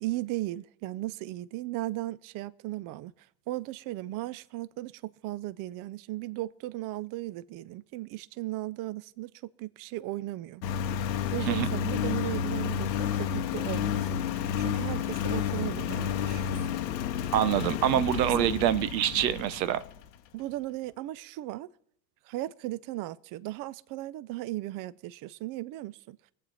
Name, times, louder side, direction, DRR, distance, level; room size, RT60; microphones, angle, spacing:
voice 1, 0.0-3.1 3.5-9.3 9.6-10.6 11.0-14.1 14.6-16.8 18.2-18.5 20.3-21.7 22.2-26.2, right 17 dB, 45° right, 0.5 m, -36 dB
Engine, 10.6-20.1, left 8 dB, 85° left, 0.9 m, -31 dB
voice 2, 17.3-19.8, right 12 dB, 85° right, 0.8 m, -25 dB
21.5 x 8.3 x 4.2 m
hypercardioid pair, 85°, 50 cm